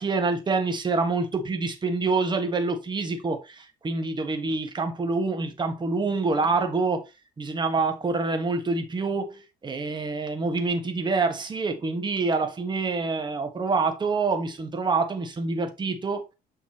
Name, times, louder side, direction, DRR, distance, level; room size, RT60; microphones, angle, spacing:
voice 1, 0.0-7.0 7.4-16.2, right 3 dB, 25° right, 1.6 m, -26 dB
7.5 x 5.4 x 3.0 m
cardioid pair, 110°, 17 cm